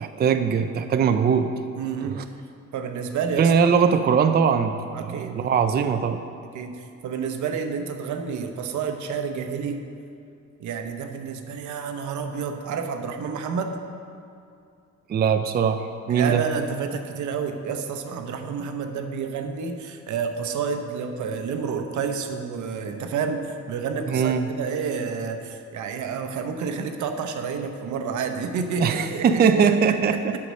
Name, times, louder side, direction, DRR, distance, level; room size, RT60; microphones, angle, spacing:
voice 1, 0.0-1.5 2.0-2.2 3.4-6.2 15.1-16.4 24.1-24.5 28.8-30.5, right 6 dB, 35° right, 8 dB, 0.4 m, -21 dB
voice 2, 1.8-2.2 2.7-3.5 4.9-5.4 6.5-9.8 10.6-13.8 16.1-29.5, right 6 dB, 75° right, 6 dB, 0.9 m, -29 dB
8.1 x 5.7 x 6.4 m, 2.5 s
cardioid pair, 90°, 30 cm